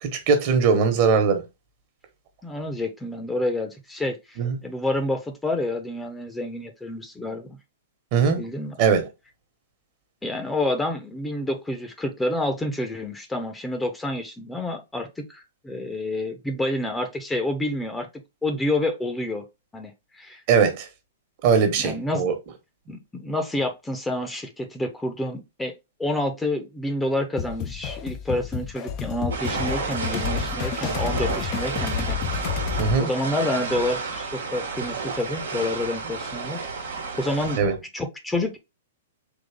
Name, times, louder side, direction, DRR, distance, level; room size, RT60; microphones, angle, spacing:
voice 1, 0.0-1.4 4.4-4.6 8.1-8.4 8.8-9.0 20.5-20.8 21.4-22.3 32.8-33.1 37.6-37.7, right 5 dB, 45° right, 1.4 m, -20 dB
voice 2, 2.4-4.4 4.6-7.6 8.4-8.7 10.2-18.1 18.4-19.4 19.7-19.9 20.2-20.4 21.7-22.3 22.9-25.7 26.0-32.2 33.0-36.6 37.2-37.6 37.9-38.6, left 1 dB, 10° left, 0.8 m, -28 dB
sound 1, 27.4-33.0, left 8 dB, 35° left, 0.5 m, -30 dB
sound 2, 29.3-37.6, right 4 dB, 75° right, 1.2 m, -31 dB
3.9 x 3.1 x 3.5 m
hypercardioid pair, 115°, 0 cm